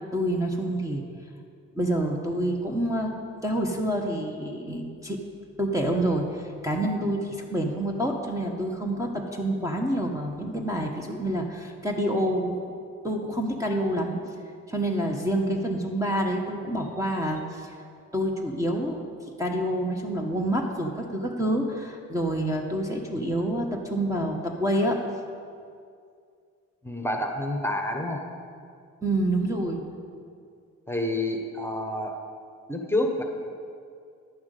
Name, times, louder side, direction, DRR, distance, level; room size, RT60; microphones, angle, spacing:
voice 1, 0.1-1.0 1.8-3.1 3.4-5.2 5.6-12.6 13.0-14.2 14.7-17.7 18.1-19.0 19.4-25.0 29.0-29.8, right 1 dB, 10° right, 0 dB, 1.3 m, -27 dB
voice 2, 26.8-28.2 30.9-32.1 32.7-33.2, left 1 dB, 5° left, 3 dB, 1.3 m, -28 dB
11.0 x 5.9 x 8.2 m, 2.3 s
cardioid pair, 75°, 30 cm